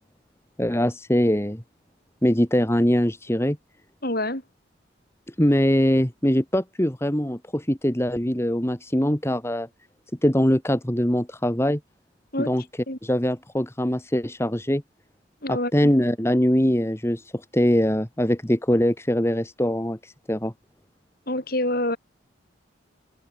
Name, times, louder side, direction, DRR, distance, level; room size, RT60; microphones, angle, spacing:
voice 1, 0.6-1.6 2.2-3.6 5.4-9.7 10.2-11.8 12.4-12.6 13.0-14.8 15.5-17.2 17.5-20.5, equal, 15° left, 1.4 m, -22 dB
voice 2, 4.0-4.4 12.3-12.5 12.9-13.0 15.4-15.7 21.3-22.0, left 1 dB, 45° left, 6.5 m, -26 dB
head